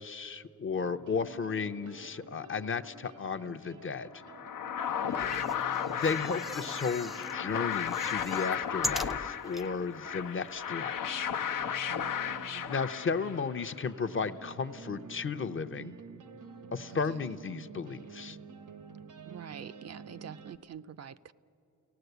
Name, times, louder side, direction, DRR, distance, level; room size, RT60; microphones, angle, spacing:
voice 1, 0.0-4.1 5.2-5.3 5.9-11.3 12.7-15.9 16.7-18.4, left 5 dB, 40° left, 10 dB, 0.6 m, -34 dB
sound 1, 0.7-20.6, right 3 dB, 90° right, 1.1 m, -50 dB
sound 2, 4.2-13.6, left 8 dB, 90° left, 0.8 m, -34 dB
voice 2, 5.0-5.5 11.8-12.7 19.2-21.3, right 8 dB, 55° right, 13 dB, 0.5 m, -47 dB
sound 3, 5.1-7.4 7.7-9.7 10.2-10.3 10.5-10.6, equal, ahead, 0.5 m, -40 dB
30.0 x 18.0 x 8.0 m, 2.9 s
wide cardioid pair, 145°, 31 cm